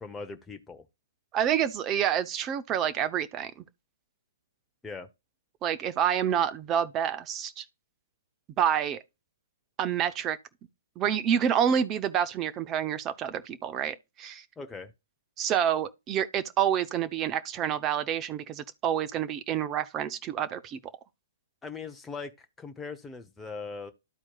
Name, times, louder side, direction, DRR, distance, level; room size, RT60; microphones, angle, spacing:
voice 1, 0.0-0.9 4.8-5.1 14.6-14.9 21.6-23.9, left 4 dB, 10° left, 0.9 m, -40 dB
voice 2, 1.3-3.5 5.6-7.6 8.6-9.0 9.8-10.4 11.0-14.4 15.4-20.8, right 9 dB, 25° right, 0.7 m, -28 dB
13.0 x 4.4 x 2.3 m
figure-of-eight pair, 120°, 0 cm